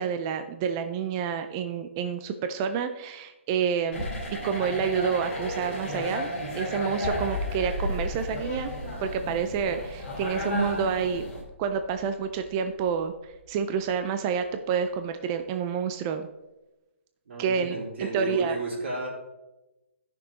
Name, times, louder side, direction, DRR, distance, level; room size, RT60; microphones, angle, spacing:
voice 1, 0.0-4.0 4.4-6.3 6.5-8.7 9.0-11.2 11.6-16.3 17.4-18.6, right 7 dB, 15° right, 8 dB, 0.3 m, -29 dB
sound 1, 3.9-11.4, equal, 10° left, 2.6 m, -33 dB
sound 2, 7.0-14.3, left 2 dB, 40° left, 1.3 m, -38 dB
voice 2, 17.3-19.1, right 3 dB, 65° right, -2 dB, 3.5 m, -32 dB
13.5 x 6.0 x 3.6 m, 1.0 s
hypercardioid pair, 170°, 7 cm